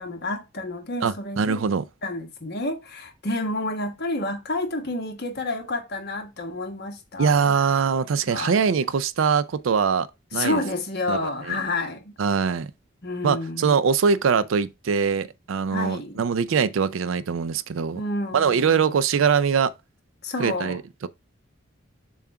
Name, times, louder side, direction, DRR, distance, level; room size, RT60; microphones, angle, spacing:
voice 1, 0.0-1.6 2.0-7.5 8.3-8.6 10.3-12.1 13.0-13.8 15.7-16.2 17.9-18.9 20.2-20.8, left 2 dB, 55° left, 1.3 m, -30 dB
voice 2, 1.0-1.8 7.2-10.1 10.3-10.6 11.1-11.2 11.5-11.6 12.2-12.7 13.2-18.0 18.3-19.7 20.4-20.8, right 6 dB, 75° right, 0.4 m, -22 dB
7.1 x 2.4 x 5.6 m
head